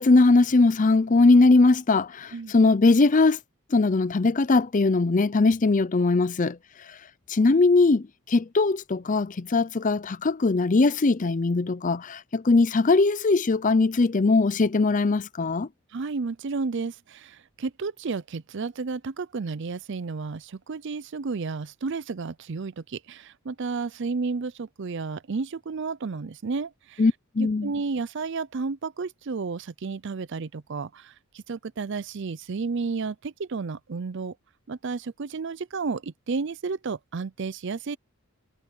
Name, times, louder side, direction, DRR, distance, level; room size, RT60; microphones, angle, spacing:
voice 1, 0.0-3.4 3.7-6.6 6.9-7.0 7.3-15.7 27.0-27.7, left 3 dB, 35° left, 0.5 m, -20 dB
voice 2, 15.9-27.0 27.4-34.3 34.7-38.0, right 4 dB, 55° right, 0.5 m, -32 dB
head